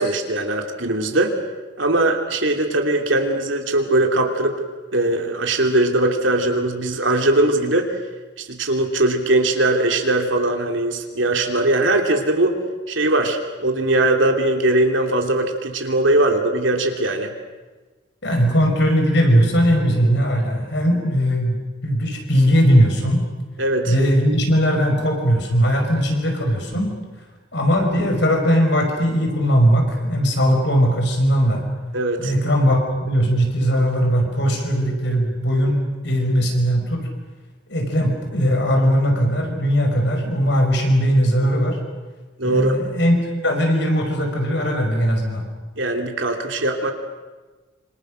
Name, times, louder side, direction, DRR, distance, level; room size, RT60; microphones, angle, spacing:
voice 1, 0.0-1.4 1.8-4.6 4.9-8.0 8.4-12.6 12.9-17.3 23.6-23.9 31.9-32.3 42.4-42.7 45.8-46.9, right 2 dB, 70° right, 3 dB, 3.0 m, -20 dB
voice 2, 18.2-23.2 23.8-26.9 27.5-31.6 32.2-37.1 37.7-41.8 42.4-43.2 43.4-45.4, equal, 60° left, 3 dB, 5.5 m, -19 dB
27.0 x 26.5 x 6.5 m, 1.3 s
head